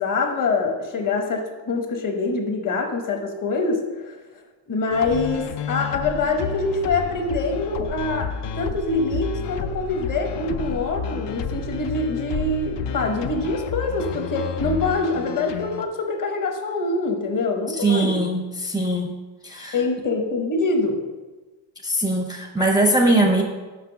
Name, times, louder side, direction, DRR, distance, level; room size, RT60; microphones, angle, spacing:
voice 1, 0.0-4.2 4.7-18.2 19.7-21.0, left 3 dB, 40° left, 4 dB, 1.0 m, -25 dB
sound 1, 4.9-15.8, left 6 dB, 60° left, 0.5 m, -31 dB
voice 2, 17.8-19.1 19.4-19.8 21.8-23.4, right 1 dB, 10° right, 1 dB, 0.5 m, -21 dB
6.0 x 5.7 x 5.7 m, 1.3 s
cardioid pair, 150°, 50 cm